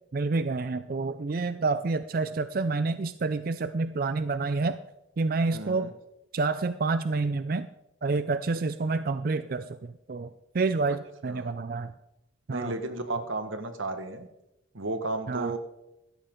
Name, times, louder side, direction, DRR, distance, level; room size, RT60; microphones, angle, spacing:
voice 1, 0.1-4.8 5.2-5.9 6.3-7.7 8.0-11.9 12.5-12.8 15.3-15.5, right 3 dB, 45° right, 12 dB, 0.4 m, -28 dB
voice 2, 5.5-5.9 11.3-11.5 12.5-14.3 14.7-15.6, right 2 dB, 90° right, 8 dB, 1.5 m, -33 dB
16.0 x 13.0 x 3.8 m, 0.88 s
head